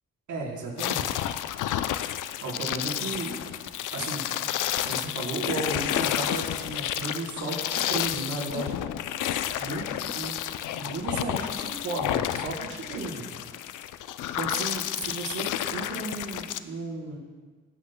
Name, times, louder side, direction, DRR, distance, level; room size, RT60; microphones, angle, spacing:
voice 1, 0.3-1.2 2.4-3.4 3.9-4.3 4.8-9.2 9.6-10.3 10.8-13.2 14.4-17.2, right 3 dB, 75° right, -4 dB, 3.8 m, -34 dB
sound 1, 0.8-16.6, left 12 dB, 85° left, 0.5 m, -31 dB
23.5 x 8.3 x 2.2 m, 1.5 s
cardioid pair, 95°, 30 cm